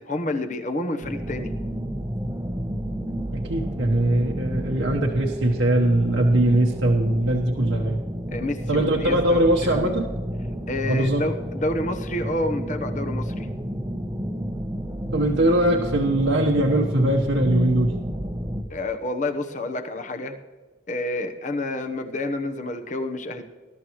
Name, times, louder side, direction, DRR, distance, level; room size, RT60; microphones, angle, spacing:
voice 1, 0.0-1.5 8.3-10.0 10.7-13.5 18.7-20.4 20.9-23.4, left 1 dB, 40° left, 6 dB, 1.0 m, -29 dB
sound 1, 1.0-18.6, equal, 15° right, 0.9 m, -30 dB
voice 2, 3.3-8.0 8.7-10.1 10.9-11.2 15.1-17.9, right 1 dB, 80° right, -2 dB, 1.3 m, -21 dB
20.5 x 12.5 x 3.2 m, 1.3 s
head